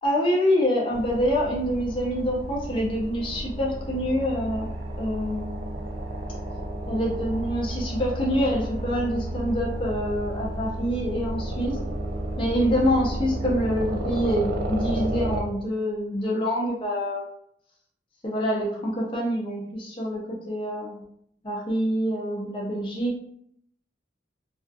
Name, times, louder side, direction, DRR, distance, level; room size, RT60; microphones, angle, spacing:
voice 1, 0.0-4.7 5.0-5.7 6.9-11.8 12.4-17.3 18.2-21.0 21.4-23.2, equal, 30° left, -3 dB, 0.4 m, -26 dB
sound 1, 0.9-15.4, right 1 dB, 55° right, 0.3 m, -32 dB
2.3 x 2.2 x 2.5 m, 0.70 s
head